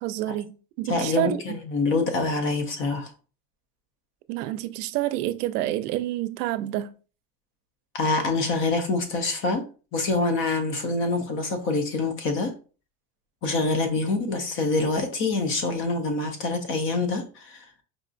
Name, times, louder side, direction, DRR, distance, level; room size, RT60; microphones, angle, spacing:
voice 1, 0.0-1.6 4.3-6.9, right 14 dB, 80° right, 0.5 m, -28 dB
voice 2, 0.9-3.1 7.9-9.6 9.9-12.5 13.4-17.7, left 3 dB, 30° left, 0.4 m, -25 dB
4.9 x 2.3 x 2.5 m
supercardioid pair, 145°, 46 cm